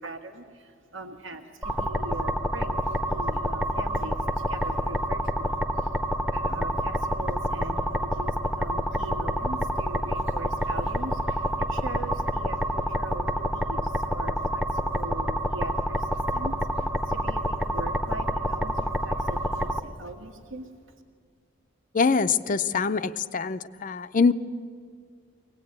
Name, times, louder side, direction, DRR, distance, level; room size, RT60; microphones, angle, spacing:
voice 1, 0.0-20.7, right 2 dB, 90° right, 4 dB, 1.9 m, -41 dB
sound 1, 1.6-19.8, equal, 5° right, 0.8 m, -28 dB
voice 2, 21.9-24.3, left 5 dB, 45° left, 13 dB, 0.6 m, -24 dB
23.0 x 18.5 x 8.8 m, 2.1 s
head